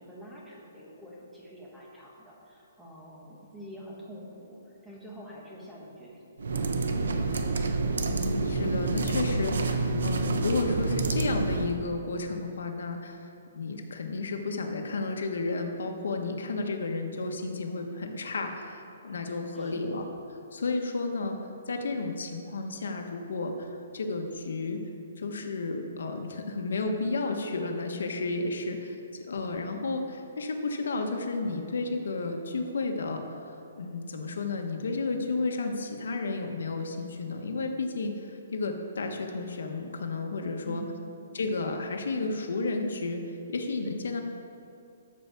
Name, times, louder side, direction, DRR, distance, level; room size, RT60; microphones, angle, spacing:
voice 1, 0.0-7.4 19.5-20.0 40.6-41.1, equal, 5° right, -5 dB, 1.3 m, -47 dB
sound 1, 6.4-11.8, right 3 dB, 75° right, 0.9 m, -28 dB
voice 2, 8.1-20.0 20.5-21.4 21.7-24.8 25.2-28.8 29.3-40.8 41.3-43.2 43.5-44.2, left 3 dB, 80° left, 4 dB, 1.2 m, -32 dB
13.0 x 4.8 x 6.8 m, 2.7 s
hypercardioid pair, 175°, 0 cm